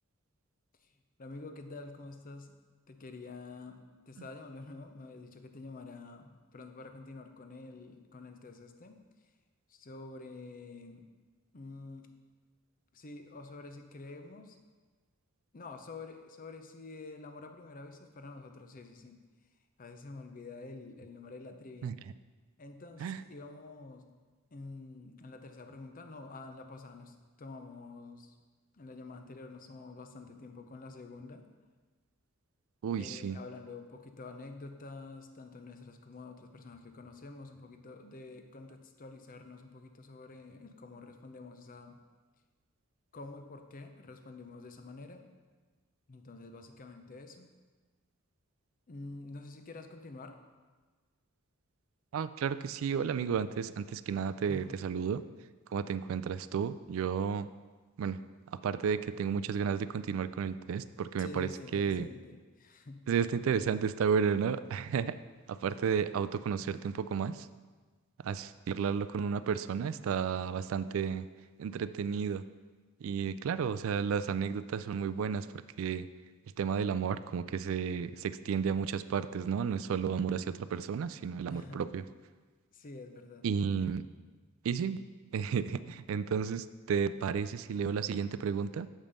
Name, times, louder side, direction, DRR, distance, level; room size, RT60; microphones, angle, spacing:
voice 1, 1.2-2.6 2.9-9.0 9.7-11.1 11.5-12.1 12.9-14.6 15.5-19.2 19.8-22.0 22.6-24.1 24.5-28.3 28.7-31.5 33.0-42.0 43.1-45.3 46.1-47.5 48.9-50.4 54.4-54.7 61.2-63.1 81.5-81.9 82.7-83.5, left 3 dB, 40° left, 6 dB, 0.6 m, -48 dB
voice 2, 32.8-33.4 52.1-55.2 55.7-57.5 58.0-58.2 58.6-62.1 63.1-65.2 65.5-67.5 68.2-71.3 71.6-72.4 73.0-75.5 75.8-76.1 76.6-82.0 83.4-84.0 84.6-85.0 85.3-88.9, right 6 dB, 70° right, 13 dB, 0.3 m, -32 dB
7.3 x 5.1 x 5.3 m, 1.4 s
head